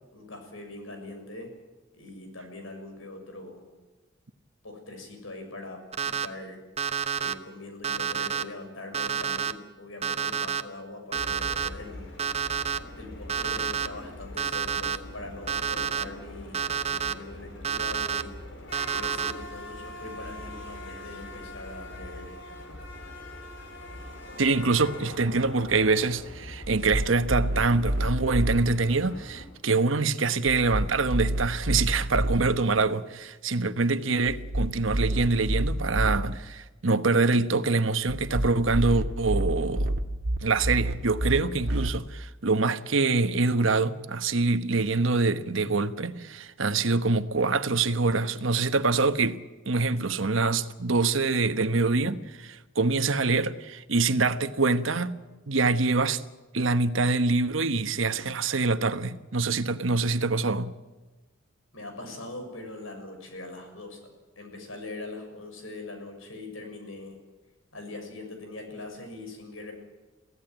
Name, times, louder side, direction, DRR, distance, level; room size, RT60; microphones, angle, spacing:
voice 1, 0.1-1.5 1.9-3.6 4.6-6.6 7.2-12.0 13.0-16.6 16.8-18.3 18.9-22.4 61.7-67.2 67.7-69.7, left 2 dB, 85° left, 6.8 m, -42 dB
Alarm, 5.9-6.3 6.8-7.3 7.8-8.4 8.9-9.5 10.0-10.6 11.1-11.7 12.2-12.8 13.3-13.9 14.4-15.0 15.5-16.0 16.5-17.1 17.6-18.2 18.7-19.3, right 7 dB, 35° right, 1.0 m, -29 dB
sound 1, 11.1-29.4, left 1 dB, 65° left, 4.8 m, -42 dB
voice 2, 24.4-39.9 40.4-49.4 49.7-55.2 55.5-56.2 56.5-60.7, right 3 dB, 75° right, 1.2 m, -25 dB
sound 2, 26.6-28.6 30.5-32.4 34.3-36.2 38.1-41.9, right 1 dB, 60° right, 1.5 m, -29 dB
23.5 x 16.0 x 9.2 m
head